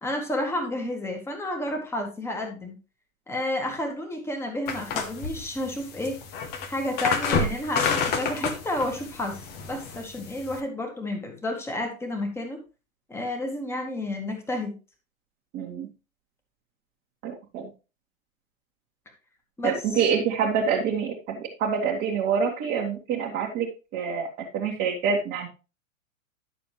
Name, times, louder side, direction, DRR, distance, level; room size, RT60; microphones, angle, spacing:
voice 1, 0.0-2.7 3.3-6.2 6.7-12.6 13.1-14.7 19.6-20.0, left 1 dB, 5° left, 3 dB, 1.8 m, -31 dB
sound 1, 4.7-10.6, left 5 dB, 25° left, 1.2 m, -29 dB
voice 2, 15.5-15.9 17.2-17.7 19.6-25.5, right 6 dB, 25° right, -2 dB, 1.7 m, -26 dB
11.5 x 6.8 x 3.2 m, 0.31 s
figure-of-eight pair, 105°, 40 cm